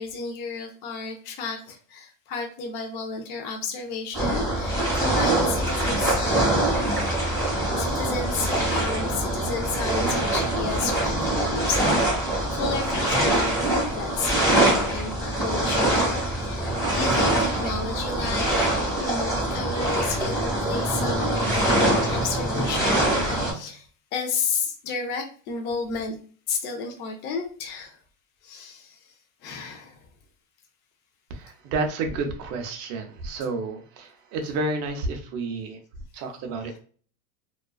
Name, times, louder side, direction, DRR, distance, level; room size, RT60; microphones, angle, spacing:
voice 1, 0.0-7.5 7.8-18.5 19.0-26.2 26.5-28.0 28.4-29.1 29.4-30.1, left 5 dB, 30° left, 2 dB, 0.4 m, -32 dB
sound 1, 4.1-23.5, right 1 dB, 10° left, 1.2 m, -24 dB
voice 2, 31.3-35.8 36.1-36.8, right 3 dB, 40° right, 5 dB, 0.5 m, -30 dB
2.3 x 2.3 x 2.3 m, 0.42 s
supercardioid pair, 145°, 38 cm